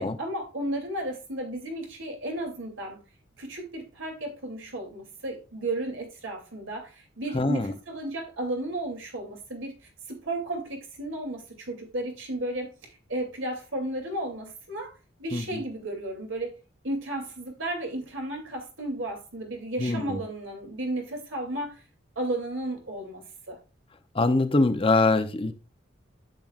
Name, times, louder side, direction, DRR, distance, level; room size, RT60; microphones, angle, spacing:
voice 1, 0.0-3.0 3.4-12.7 13.1-14.9 15.2-16.6 16.8-21.8 22.2-23.6, right 1 dB, 80° right, 2.8 m, -34 dB
voice 2, 7.3-7.7 15.3-15.4 19.8-20.2 24.1-25.5, left 3 dB, 30° left, 0.7 m, -23 dB
10.5 x 7.8 x 2.4 m
head